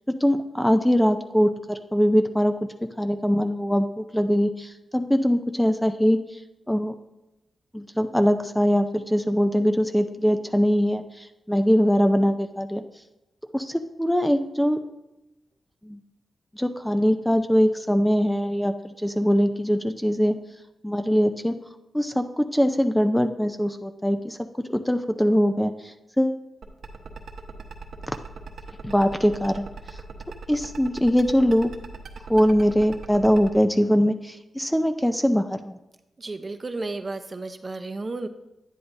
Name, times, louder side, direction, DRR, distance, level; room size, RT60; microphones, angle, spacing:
voice 1, 0.1-6.2 6.7-6.9 7.7-12.8 13.5-14.8 15.8-16.0 16.6-20.4 20.8-21.5 21.9-24.4 24.7-26.4 28.8-29.7 30.5-31.7 32.3-35.8, equal, 5° left, 7 dB, 0.5 m, -22 dB
sound 1, 26.6-33.5, right 5 dB, 75° right, 1.0 m, -39 dB
voice 2, 36.2-38.3, right 3 dB, 35° right, 8 dB, 0.8 m, -33 dB
10.0 x 9.9 x 2.7 m, 0.93 s
cardioid pair, 70°, 0 cm